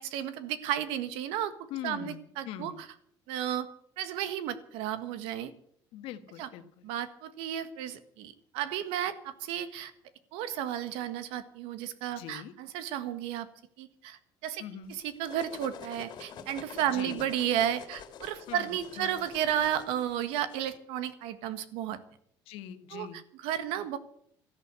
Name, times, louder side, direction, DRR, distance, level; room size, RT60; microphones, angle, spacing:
voice 1, 0.0-1.5 1.8-2.9 3.3-3.7 4.0-5.5 6.4-6.5 6.8-9.9 10.3-13.5 13.8-14.6 14.9-22.0 22.9-24.0, right 10 dB, 85° right, 12 dB, 1.6 m, -33 dB
voice 2, 1.7-2.8 5.9-6.9 12.1-12.5 14.6-14.9 16.8-17.2 18.5-19.2 22.5-23.2, left 10 dB, 75° left, 10 dB, 1.5 m, -42 dB
sound 1, 14.9-20.8, left 7 dB, 50° left, 2.3 m, -47 dB
13.5 x 11.0 x 8.2 m, 0.67 s
cardioid pair, 125°, 9 cm